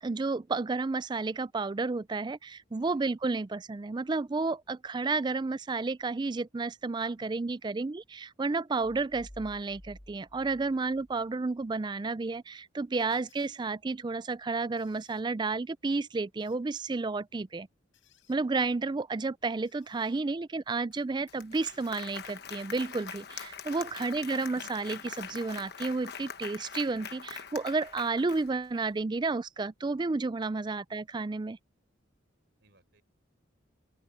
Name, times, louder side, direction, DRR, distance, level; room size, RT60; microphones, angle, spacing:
voice 1, 0.0-17.7 18.3-31.6, right 3 dB, 25° right, 0.3 m, -31 dB
voice 2, 7.2-7.6 10.7-10.8 13.1-13.2 20.1-20.4 23.8-24.1 32.6-33.0, right 2 dB, 60° right, 4.5 m, -67 dB
sound 1, 8.8-11.7, equal, 25° left, 3.4 m, -53 dB
sound 2, 12.9-13.5 14.8-15.2 16.4-16.9 17.9-18.4 19.6-20.2 21.4-22.1 22.7-23.2 24.3-24.5 25.0-25.6 26.7-26.9 27.8-27.9, left 11 dB, 85° left, 5.2 m, -66 dB
Applause, 20.9-21.0 21.3-28.8, left 7 dB, 55° left, 1.2 m, -43 dB
open air
head